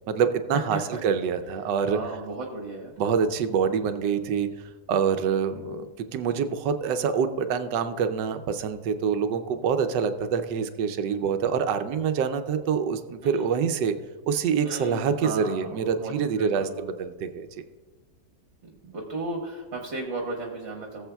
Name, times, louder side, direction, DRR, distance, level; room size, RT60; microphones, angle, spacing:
voice 1, 0.1-2.0 3.0-4.5 4.9-14.0 14.3-16.7 17.0-17.6, right 6 dB, 85° right, 9 dB, 1.3 m, -26 dB
voice 2, 0.7-1.0 1.9-2.9 13.2-13.6 14.6-16.9 18.9-21.1, right 3 dB, 50° right, 1 dB, 1.4 m, -35 dB
19.0 x 7.3 x 2.3 m, 1.4 s
omnidirectional pair, 1.8 m